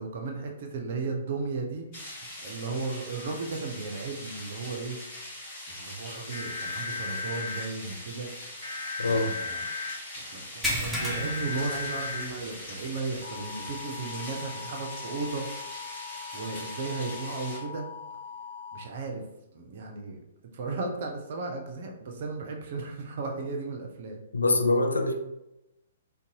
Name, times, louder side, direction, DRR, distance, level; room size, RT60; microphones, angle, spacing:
voice 1, 0.0-1.8 2.4-5.0 5.7-8.3 9.0-9.6 10.2-15.5 16.3-17.9 18.7-19.2 19.5-20.2 20.5-24.2, right 3 dB, 45° right, 2 dB, 0.5 m, -35 dB
sound 1, 1.9-17.6, left 1 dB, 35° left, 1.1 m, -42 dB
sound 2, 6.3-7.6 8.6-9.9 10.9-12.2 13.2-18.8, left 4 dB, 55° left, 0.9 m, -38 dB
voice 2, 9.0-9.3 24.3-25.1, left 2 dB, 75° left, 5 dB, 0.3 m, -24 dB
sound 3, 10.6-12.5 12.9-13.1 13.5-13.6 15.3-15.4, equal, ahead, 0.5 m, -33 dB
2.5 x 2.2 x 2.8 m, 0.91 s
figure-of-eight pair, 120°, 0 cm